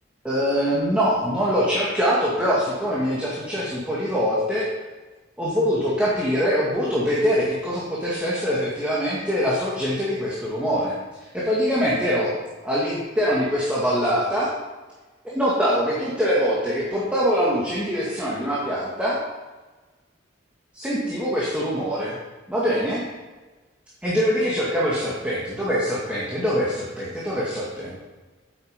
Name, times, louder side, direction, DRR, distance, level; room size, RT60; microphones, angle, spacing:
voice 1, 0.2-4.7 5.4-11.0 11.3-12.3 12.6-14.5 15.2-19.2 20.7-22.1 22.5-23.0 24.0-28.0, equal, 5° right, -7 dB, 2.0 m, -23 dB
9.8 x 8.2 x 5.2 m, 1.3 s
head